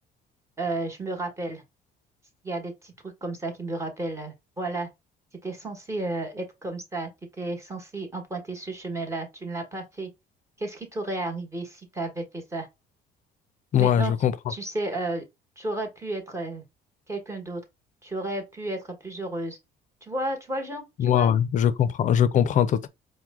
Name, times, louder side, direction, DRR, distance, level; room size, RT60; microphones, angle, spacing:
voice 1, 0.6-1.6 2.4-2.9 3.2-4.9 5.4-7.1 7.4-10.1 10.6-12.7 13.8-14.1 14.5-15.2 15.6-16.6 17.1-17.6 18.0-19.6 20.0-21.3, right 2 dB, 15° right, 1.2 m, -32 dB
voice 2, 13.7-14.3 21.0-22.9, left 9 dB, 45° left, 0.5 m, -21 dB
4.6 x 2.2 x 3.5 m
cardioid pair, 110°, 17 cm